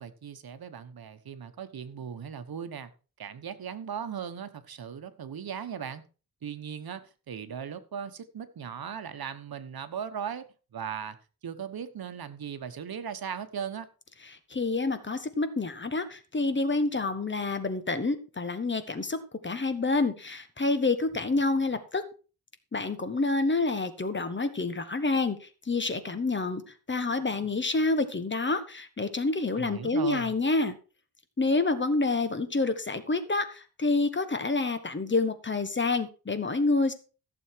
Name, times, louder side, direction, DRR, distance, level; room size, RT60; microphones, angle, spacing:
voice 1, 0.0-2.9 3.2-6.0 6.4-11.2 11.4-13.9 29.6-30.3, right 7 dB, 75° right, 1.3 m, -38 dB
voice 2, 14.5-19.2 19.4-22.0 22.7-26.6 26.9-30.7 31.4-36.9, left 3 dB, 30° left, 1.4 m, -28 dB
15.0 x 7.1 x 4.6 m
wide cardioid pair, 120°, 37 cm